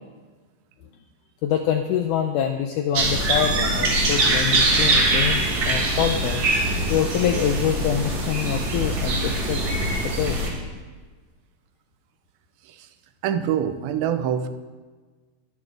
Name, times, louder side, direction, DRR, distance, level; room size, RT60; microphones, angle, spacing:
voice 1, 1.4-6.5 6.9-9.6 10.0-10.5, left 9 dB, 85° left, 5 dB, 1.8 m, -25 dB
sound 1, 2.9-10.5, right 2 dB, 55° right, 3.2 m, -22 dB
voice 2, 13.2-14.5, right 9 dB, 85° right, 9 dB, 2.5 m, -25 dB
22.5 x 8.5 x 3.4 m, 1.4 s
omnidirectional pair, 4.3 m